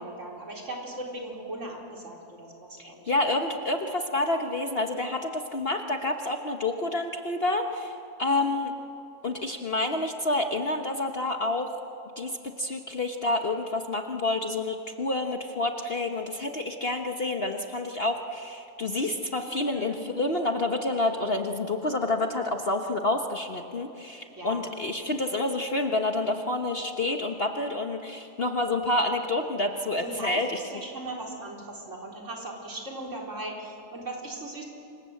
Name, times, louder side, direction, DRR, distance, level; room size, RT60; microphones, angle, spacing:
voice 1, 0.0-3.1 8.4-8.5 19.7-20.0 24.4-24.6 30.0-34.6, right 1 dB, 45° right, -1 dB, 4.5 m, -38 dB
voice 2, 2.8-7.9 8.2-8.7 9.2-11.8 12.2-30.6, left 2 dB, 40° left, 4 dB, 1.3 m, -28 dB
28.5 x 25.5 x 7.8 m, 2.8 s
omnidirectional pair, 1.7 m